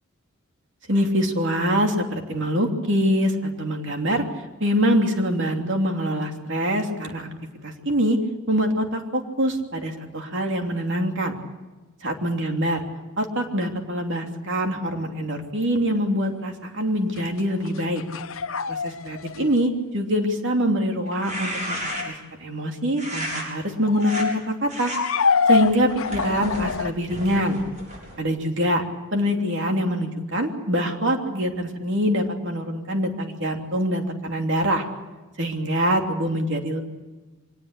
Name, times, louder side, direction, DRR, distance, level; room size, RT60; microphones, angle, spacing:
voice 1, 0.9-4.2 4.6-7.3 7.6-8.2 8.5-11.3 12.0-12.8 13.2-18.0 18.7-21.8 22.0-22.1 22.4-24.9 25.5-27.6 28.2-28.8 29.1-34.8 35.4-36.8, equal, 55° right, 3 dB, 3.1 m, -24 dB
sound 1, 17.1-19.5 21.8-22.1 23.8-24.4 24.9-26.9, left 5 dB, 65° left, 0.8 m, -25 dB
sound 2, 21.1-22.3 23.0-23.4 24.0-24.3 24.7-25.0 25.6-28.2, equal, 35° right, 7.3 m, -33 dB
24.0 x 19.5 x 8.3 m, 1.2 s
head